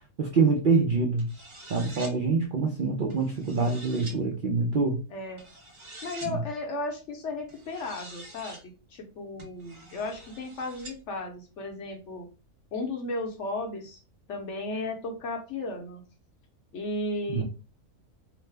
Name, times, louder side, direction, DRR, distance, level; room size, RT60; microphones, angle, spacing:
voice 1, 0.2-1.3 1.7-5.0 6.2-6.4 17.3-17.4, right 4 dB, 85° right, 1 dB, 0.4 m, -25 dB
sound 1, 1.2-2.1 3.1-4.2 5.4-6.3 7.5-8.6 9.4-11.0, right 2 dB, 25° right, 0.8 m, -46 dB
voice 2, 5.1-5.4 6.0-12.3 12.7-14.0 14.3-16.0 16.7-17.4, left 2 dB, 60° left, 3 dB, 0.8 m, -35 dB
3.0 x 2.0 x 3.2 m, 0.32 s
omnidirectional pair, 1.6 m